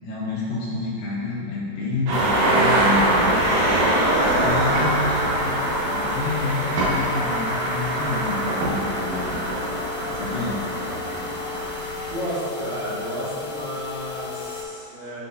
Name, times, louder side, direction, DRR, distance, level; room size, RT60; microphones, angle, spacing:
voice 1, 0.0-3.3 4.3-9.3 10.1-10.7, left 3 dB, 70° left, -6 dB, 2.8 m, -29 dB
sound 1, 2.1-14.6, left 5 dB, 85° left, 3.1 m, -35 dB
sound 2, 2.1-12.1, right 1 dB, 65° right, 2.9 m, -23 dB
voice 2, 3.6-3.9 10.0-10.5 12.1-15.2, equal, 85° right, -9 dB, 4.1 m, -32 dB
12.0 x 4.4 x 2.6 m, 2.7 s
omnidirectional pair, 5.1 m